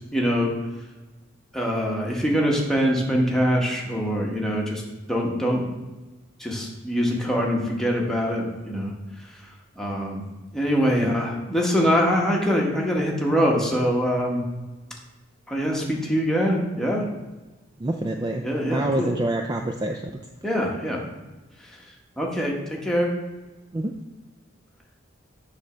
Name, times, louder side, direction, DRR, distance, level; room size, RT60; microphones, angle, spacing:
voice 1, 0.1-0.5 1.5-4.8 5.1-5.6 6.4-8.9 9.7-10.2 10.5-14.4 15.5-17.0 18.4-19.1 20.4-21.0 22.2-23.1, equal, 5° left, -2 dB, 1.2 m, -23 dB
voice 2, 17.8-20.0 23.7-23.9, right 1 dB, 20° right, 3 dB, 0.4 m, -27 dB
7.9 x 3.4 x 6.2 m, 1.2 s
head